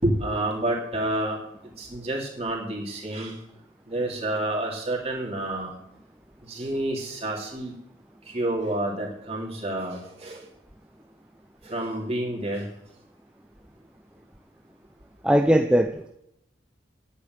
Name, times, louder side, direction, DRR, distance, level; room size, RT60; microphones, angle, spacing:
voice 1, 0.0-1.4 1.8-3.3 3.9-5.7 6.5-7.7 8.3-10.4 11.7-12.7, right 1 dB, 30° right, -1 dB, 3.3 m, -29 dB
voice 2, 15.2-16.1, equal, 5° right, 4 dB, 0.5 m, -20 dB
10.5 x 8.6 x 8.1 m, 0.79 s
head